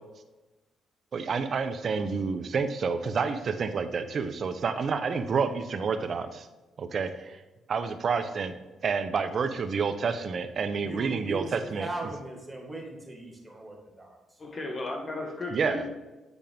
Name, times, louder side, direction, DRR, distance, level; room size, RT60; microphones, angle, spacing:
voice 1, 1.1-6.5 6.8-7.4 7.7-8.5 8.8-11.9 15.5-15.8, right 5 dB, 50° right, 9 dB, 0.7 m, -29 dB
voice 2, 10.8-14.4, right 2 dB, 10° right, 0 dB, 1.8 m, -39 dB
voice 3, 14.4-15.9, left 2 dB, 35° left, 2 dB, 1.6 m, -34 dB
8.2 x 5.0 x 3.5 m, 1.1 s
cardioid pair, 90°, 0 cm